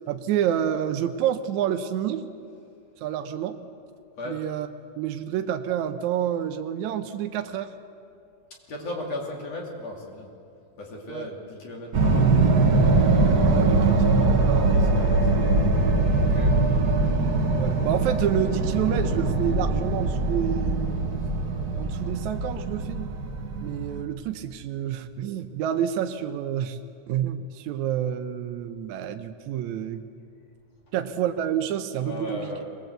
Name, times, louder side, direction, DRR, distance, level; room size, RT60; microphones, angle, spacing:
voice 1, 0.1-2.3 3.0-3.6 4.3-4.7 5.0-7.7 11.1-11.3 13.3-14.0 14.4-14.8 17.0-17.1 17.5-21.0 21.8-23.1 23.6-26.8 27.1-30.0 30.9-32.5, right 10 dB, 75° right, 7 dB, 2.0 m, -28 dB
voice 2, 8.7-10.3 10.8-12.5 13.5-15.5 16.2-16.5 31.9-32.6, left 1 dB, 50° left, -1 dB, 3.6 m, -37 dB
sound 1, 11.9-24.0, right 3 dB, 55° right, 1.1 m, -22 dB
23.0 x 20.0 x 8.0 m, 2.5 s
omnidirectional pair, 3.7 m